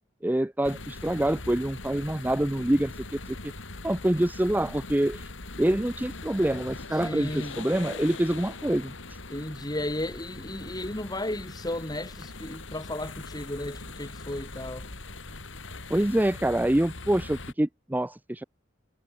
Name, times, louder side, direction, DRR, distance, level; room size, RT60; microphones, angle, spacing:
voice 1, 0.2-3.5 3.8-5.3 5.6-9.2 15.9-18.4, right 1 dB, 10° right, 0.5 m, -26 dB
sound 1, 0.6-17.5, left 3 dB, 75° left, 3.5 m, -41 dB
voice 2, 7.0-7.6 9.3-14.9, left 1 dB, 20° left, 3.4 m, -34 dB
head